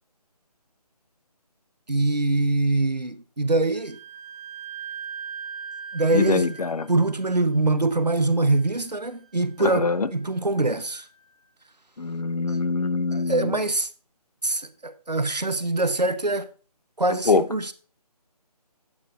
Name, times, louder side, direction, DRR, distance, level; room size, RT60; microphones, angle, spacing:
voice 1, 1.9-4.0 5.9-6.6 6.9-11.1 12.5-12.6 13.1-13.9 14.4-16.5 17.0-17.7, right 2 dB, 90° right, 0.9 m, -24 dB
Wind instrument woodwind instrument, 3.7-11.2, right 7 dB, 5° left, 4.9 m, -42 dB
voice 2, 6.1-6.9 9.6-10.1 12.0-13.6 17.3-17.4, left 4 dB, 65° left, 0.6 m, -24 dB
9.3 x 8.4 x 3.1 m
figure-of-eight pair, 155°, 21 cm